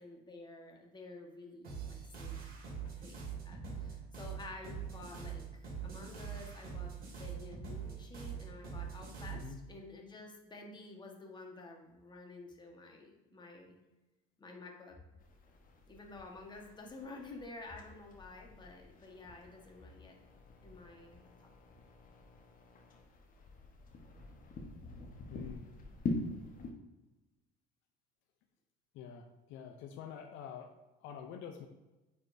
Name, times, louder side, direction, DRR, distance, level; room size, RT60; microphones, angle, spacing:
voice 1, 0.0-2.4 3.0-3.2 3.4-9.4 9.7-13.7 14.4-15.0 15.9-20.2 20.6-21.5, left 2 dB, 20° left, 1 dB, 1.4 m, -51 dB
sound 1, 1.6-9.6, right 6 dB, 45° right, 2.2 m, -43 dB
voice 2, 9.3-9.7 25.3-25.7 28.9-30.7 31.0-31.7, left 8 dB, 70° left, 5 dB, 0.7 m, -47 dB
sound 2, 15.2-26.7, left 3 dB, 45° left, 1.2 m, -45 dB
9.2 x 4.2 x 2.7 m, 1.1 s
supercardioid pair, 100°, 20 cm